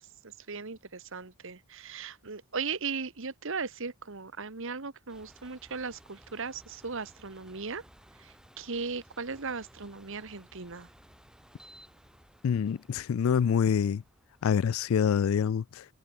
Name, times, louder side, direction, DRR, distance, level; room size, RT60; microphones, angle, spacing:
voice 1, 0.0-7.8 8.2-10.9, right 5 dB, 65° right, 1.5 m, -37 dB
sound 1, 5.1-14.8, equal, 5° right, 3.0 m, -58 dB
voice 2, 12.4-14.0 14.4-15.9, left 7 dB, 70° left, 0.3 m, -26 dB
head